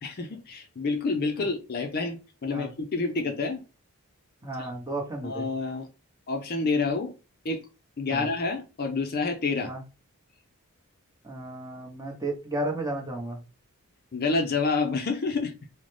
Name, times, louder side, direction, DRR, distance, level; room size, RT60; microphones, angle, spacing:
voice 1, 0.0-3.6 4.6-4.7 5.2-5.9 6.3-7.1 7.4-7.6 8.0-9.7 14.1-15.5, left 4 dB, 45° left, 0.5 m, -28 dB
voice 2, 4.4-5.5 8.1-8.3 9.6-9.8 11.2-13.4, right 1 dB, 15° right, 0.8 m, -33 dB
3.9 x 2.1 x 3.1 m
head